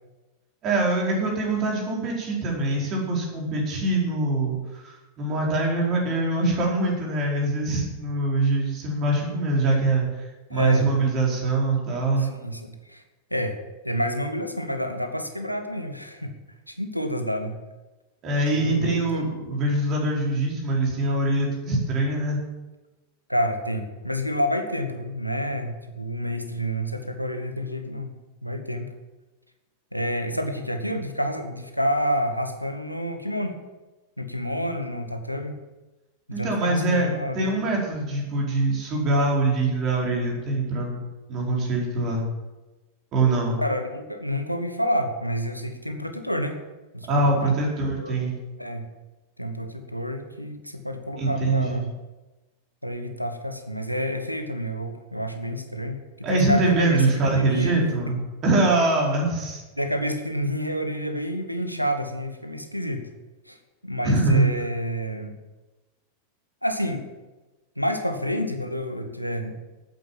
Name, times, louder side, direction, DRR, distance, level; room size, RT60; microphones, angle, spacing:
voice 1, 0.6-10.0 10.5-12.3 18.2-22.4 36.3-41.0 41.3-42.2 43.1-43.6 47.1-48.3 51.2-51.8 56.2-58.2 58.4-59.6 64.0-64.5, right 2 dB, 35° right, -2 dB, 4.9 m, -23 dB
voice 2, 10.5-10.9 12.2-13.0 13.3-13.6 13.8-16.3 16.7-17.6 18.5-19.2 23.3-28.1 28.4-28.9 29.9-33.6 34.2-35.6 36.3-37.6 43.6-46.6 46.9-47.5 48.0-48.2 48.6-48.9 49.4-51.9 52.8-57.0 57.3-57.7 59.8-63.1 63.5-63.6 63.8-65.4 66.6-67.0 67.8-69.5, equal, 90° left, 7 dB, 1.3 m, -29 dB
13.0 x 9.2 x 7.5 m, 1.1 s
figure-of-eight pair, 90°, 0 cm